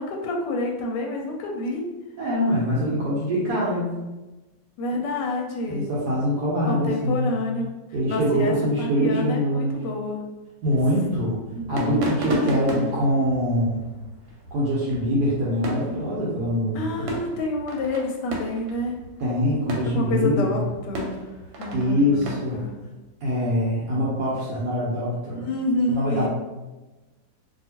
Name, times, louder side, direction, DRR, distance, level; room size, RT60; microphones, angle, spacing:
voice 1, 0.0-1.8 4.8-5.9 6.7-7.7 8.1-10.2 11.6-12.9 16.7-19.0 19.9-21.2 21.6-22.7 25.3-26.3, left 2 dB, 75° left, 0 dB, 1.1 m, -28 dB
voice 2, 2.2-4.0 5.7-7.3 7.9-9.8 10.6-11.4 11.7-13.8 14.5-17.1 19.2-20.6 21.7-22.6 23.2-25.5 25.9-26.3, equal, 65° right, -6 dB, 1.2 m, -24 dB
sound 1, 10.6-22.7, equal, 85° right, 1.4 m, -36 dB
2.8 x 2.7 x 2.8 m, 1.1 s
omnidirectional pair, 2.0 m